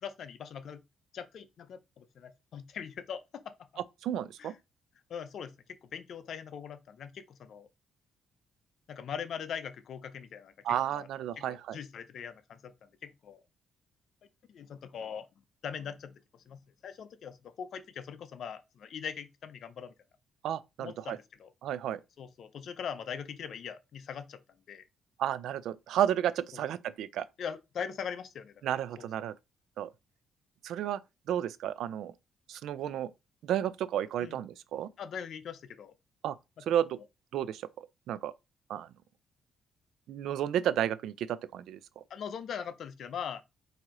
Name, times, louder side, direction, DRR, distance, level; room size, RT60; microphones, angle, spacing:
voice 1, 0.0-0.8 1.1-3.5 4.4-4.5 5.1-7.7 8.9-10.5 10.9-11.1 11.4-13.4 14.5-15.3 15.6-19.9 20.8-21.5 22.2-24.4 24.7-24.8 26.5-26.6 27.4-28.5 29.0-29.1 34.2-34.4 35.0-35.9 42.1-43.4, left 7 dB, 65° left, 0.6 m, -41 dB
voice 2, 4.0-4.5 10.6-11.8 20.4-21.2 21.6-22.0 25.2-27.2 28.6-29.3 29.8-29.9 30.6-31.0 31.3-32.1 32.5-33.1 33.4-34.9 36.2-36.4 36.7-37.0 37.3-38.3 38.7-38.9 40.1-42.0, right 10 dB, 80° right, 0.4 m, -32 dB
4.7 x 2.7 x 3.6 m
cardioid pair, 90°, 0 cm